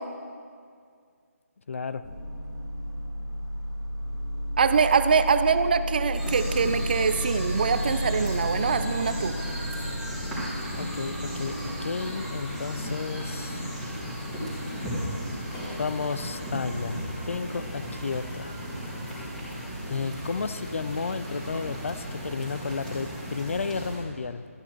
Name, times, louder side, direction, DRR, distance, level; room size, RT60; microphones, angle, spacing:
voice 1, 1.7-2.0 10.8-13.7 15.8-18.6 19.9-24.5, left 5 dB, 60° left, 13 dB, 0.5 m, -32 dB
sound 1, 2.0-17.4, equal, 25° left, 1.9 m, -34 dB
voice 2, 4.6-9.3, right 6 dB, 40° right, 11 dB, 0.5 m, -24 dB
sound 2, 6.1-24.0, equal, ahead, 3.3 m, -35 dB
13.0 x 10.5 x 4.6 m, 2.1 s
figure-of-eight pair, 160°, 8 cm